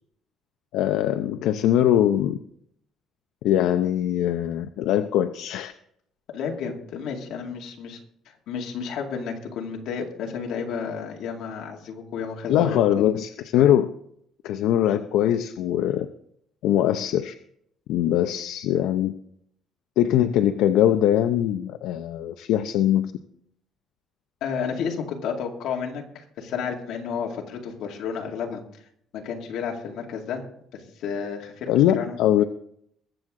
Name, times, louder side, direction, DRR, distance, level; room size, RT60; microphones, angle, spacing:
voice 1, 0.7-2.4 3.4-5.7 12.5-13.9 14.4-16.1 16.6-17.3 17.9-19.1 20.0-23.1 31.7-32.4, left 11 dB, 85° left, 8 dB, 0.6 m, -22 dB
voice 2, 6.3-8.0 8.5-13.1 24.4-28.6 29.1-30.4 30.7-32.2, left 6 dB, 65° left, 1 dB, 2.3 m, -31 dB
21.5 x 7.7 x 3.8 m, 0.70 s
cardioid pair, 175°, 0 cm